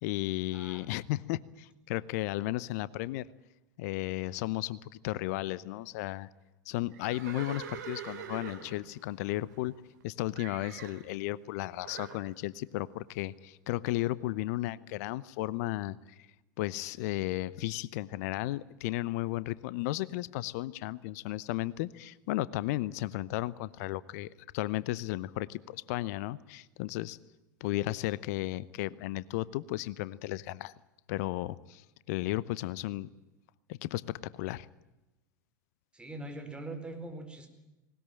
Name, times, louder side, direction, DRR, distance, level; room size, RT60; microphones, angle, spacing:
voice 1, 0.0-3.3 3.8-6.3 6.7-9.8 10.0-16.0 16.6-27.2 27.6-30.7 31.1-33.1 33.7-34.7, left 17 dB, 55° left, 20 dB, 0.8 m, -34 dB
voice 2, 0.5-0.9 35.9-37.5, right 2 dB, 10° right, 5 dB, 4.5 m, -42 dB
Livestock farm animals working animals, 6.9-10.0 10.3-11.0 11.8-12.2, right 8 dB, 65° right, 3.6 m, -44 dB
20.0 x 19.5 x 8.9 m, 1.0 s
figure-of-eight pair, 85°, 10 cm